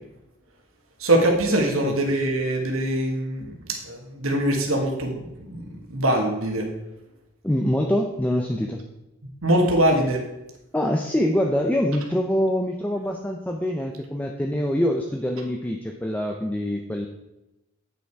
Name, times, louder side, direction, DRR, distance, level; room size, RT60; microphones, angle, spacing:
voice 1, 1.0-6.7 9.4-10.2, right 1 dB, 70° right, 1 dB, 1.6 m, -23 dB
voice 2, 7.4-8.8 10.7-17.1, left 1 dB, 5° left, 2 dB, 0.5 m, -24 dB
8.9 x 5.8 x 4.6 m, 0.93 s
head